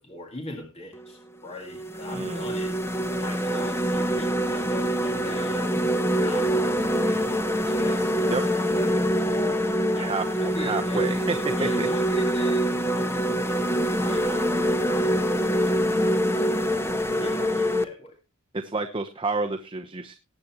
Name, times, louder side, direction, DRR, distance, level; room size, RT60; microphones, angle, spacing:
voice 1, 0.0-2.8 3.2-5.8 6.1-9.7 9.9-11.1 11.6-16.0 16.3-18.2, left 1 dB, 30° left, 2 dB, 2.1 m, -40 dB
sound 1, 0.9-1.1 1.7-17.8, equal, 10° left, 0.9 m, -25 dB
voice 2, 2.1-2.5 8.3-8.4 10.0-10.2 10.6-11.9 18.6-20.1, right 3 dB, 25° right, 5 dB, 0.9 m, -29 dB
19.0 x 8.6 x 3.0 m, 0.27 s
head